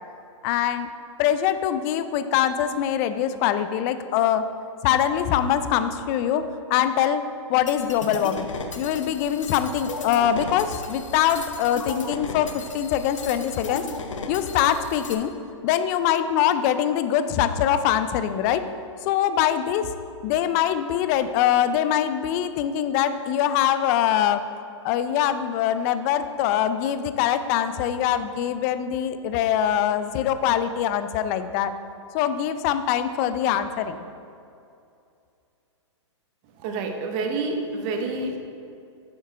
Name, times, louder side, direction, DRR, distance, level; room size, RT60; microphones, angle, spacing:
voice 1, 0.4-0.9 1.2-4.5 4.8-7.2 7.5-8.5 8.8-13.9 14.3-15.3 15.6-18.6 19.0-19.9 20.2-24.4 24.8-31.7 32.1-34.0, left 10 dB, 35° left, 11 dB, 0.4 m, -23 dB
sound 1, 7.7-15.2, left 4 dB, 85° left, 0.8 m, -35 dB
voice 2, 36.6-38.4, right 3 dB, 35° right, 4 dB, 0.9 m, -28 dB
7.6 x 4.6 x 4.6 m, 2.5 s
hypercardioid pair, 125°, 16 cm